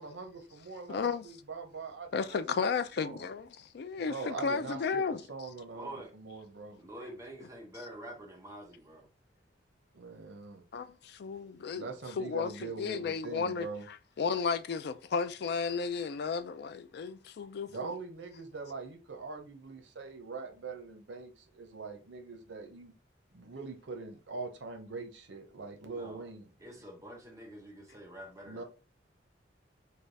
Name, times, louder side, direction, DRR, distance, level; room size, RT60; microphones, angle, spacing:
voice 1, 0.0-2.4 3.0-3.3 4.1-5.0 5.3-6.8 9.9-10.6 11.7-13.8 17.7-22.9 23.3-26.8 28.4-28.6, right 4 dB, 90° right, 0.8 m, -43 dB
voice 2, 0.9-1.2 2.1-5.2 10.7-11.9 12.2-12.5 12.8-13.7 14.2-17.9, left 5 dB, 60° left, 0.4 m, -33 dB
voice 3, 4.3-4.6 5.7-6.1 6.8-9.1 25.9-26.2 26.6-28.6, right 1 dB, 20° right, 0.8 m, -47 dB
3.3 x 2.4 x 4.0 m
head